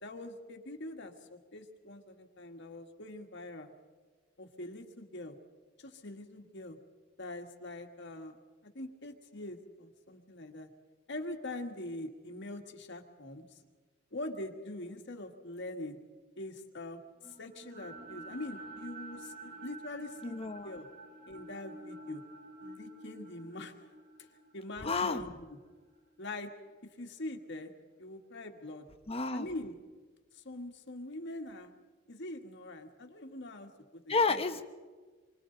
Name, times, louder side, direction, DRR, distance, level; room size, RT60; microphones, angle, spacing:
voice 1, 0.0-3.7 4.4-5.4 5.8-6.8 7.2-8.4 8.7-10.7 11.1-13.5 14.1-16.0 16.4-20.9 21.2-22.2 22.6-23.7 24.5-25.6 26.2-26.5 27.0-27.7 28.0-28.9 29.3-29.8 30.3-31.8 32.1-34.4, left 1 dB, 60° left, 4 dB, 1.8 m, -43 dB
sound 1, 17.2-27.4, right 2 dB, 50° right, 5.4 m, -50 dB
voice 2, 20.2-20.7 24.8-25.2 29.1-29.5 34.1-34.6, left 4 dB, 30° left, 7 dB, 1.2 m, -30 dB
28.0 x 24.5 x 4.0 m, 1.4 s
head